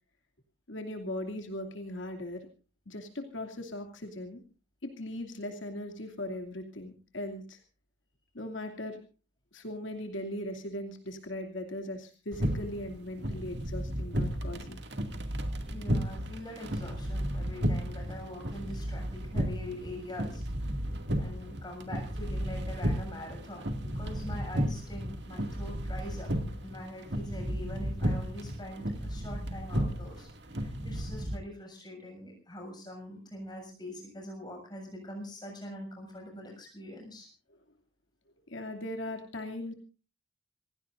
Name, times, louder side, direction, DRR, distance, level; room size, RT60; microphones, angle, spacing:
voice 1, 0.7-2.5 2.9-4.4 4.8-7.6 8.3-9.0 9.5-14.8 38.5-39.7, left 1 dB, 75° left, 4 dB, 2.7 m, -39 dB
sound 1, 12.3-31.4, equal, 55° right, 2.3 m, -34 dB
voice 2, 15.7-20.8 21.2-26.3 26.6-37.3, left 1 dB, 20° left, 2 dB, 7.1 m, -44 dB
27.5 x 17.0 x 2.6 m, 0.35 s
head